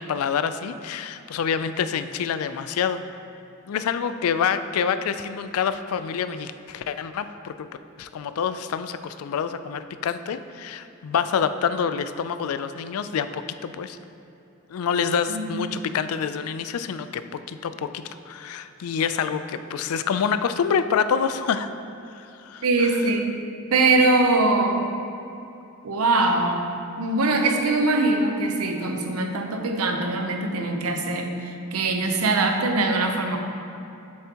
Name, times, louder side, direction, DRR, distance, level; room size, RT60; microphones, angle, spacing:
voice 1, 0.0-3.0 3.7-7.7 8.0-14.0 14.7-21.7 22.1-23.0, left 7 dB, 75° left, 11 dB, 0.3 m, -27 dB
voice 2, 15.3-15.7 22.6-23.4 23.7-24.8 25.8-33.4, right 2 dB, 80° right, 4 dB, 0.7 m, -22 dB
7.8 x 7.0 x 2.9 m, 2.9 s
head